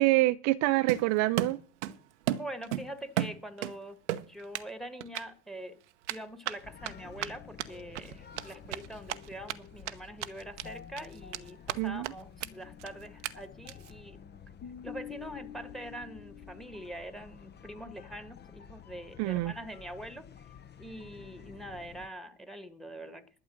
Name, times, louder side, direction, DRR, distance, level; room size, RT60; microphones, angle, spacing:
voice 1, 0.0-1.6 11.8-12.1 19.2-19.5, right 20 dB, 50° right, 0.5 m, -26 dB
Run, 0.9-2.0 2.3-3.7 4.1-4.7 5.0-5.2 6.0-9.5 9.9-10.0 10.2-10.7 11.0-11.8 12.0-12.1 12.4-12.5 12.8-12.9 13.2-13.3 13.7-13.9, right 13 dB, 75° right, 0.8 m, -34 dB
voice 2, 2.3-4.0 4.3-5.8 6.1-14.2 14.8-20.3 20.8-23.3, right 1 dB, ahead, 1.6 m, -44 dB
sound 1, 6.6-22.1, left 7 dB, 30° left, 0.9 m, -49 dB
12.0 x 8.0 x 6.3 m
hypercardioid pair, 75°, 36 cm